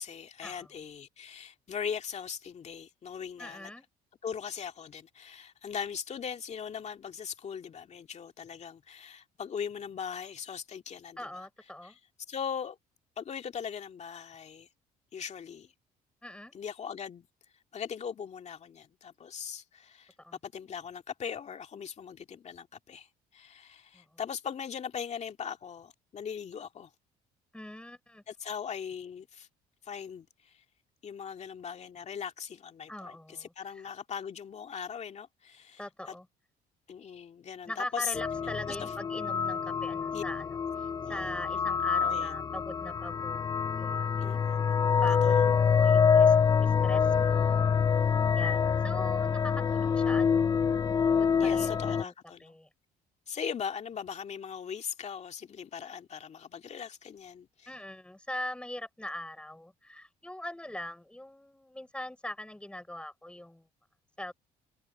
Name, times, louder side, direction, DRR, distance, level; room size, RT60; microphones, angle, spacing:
voice 1, 0.0-3.7 4.2-11.3 11.8-12.0 12.3-12.8 13.2-14.7 15.1-15.7 16.5-17.3 17.7-20.1 20.4-23.1 23.3-26.9 28.3-29.5 29.8-30.6 31.0-36.1 36.9-38.1 38.7-38.9 40.1-40.2 41.0-41.3 42.0-42.3 44.2-45.4 51.4-52.6 53.3-57.7, left 7 dB, 40° left, 2.3 m, -40 dB
voice 2, 3.4-3.9 11.2-12.0 16.2-16.5 20.2-20.4 23.9-24.2 27.5-28.2 32.9-33.9 35.8-36.3 37.7-44.5 45.0-46.4 46.6-47.7 48.0-48.1 48.3-50.5 50.8-50.9 51.2-52.1 52.4-52.7 57.7-63.7 64.2-64.3, left 1 dB, 5° left, 6.0 m, -42 dB
sound 1, 38.1-52.0, left 6 dB, 25° left, 0.3 m, -26 dB
cardioid pair, 110°, 17 cm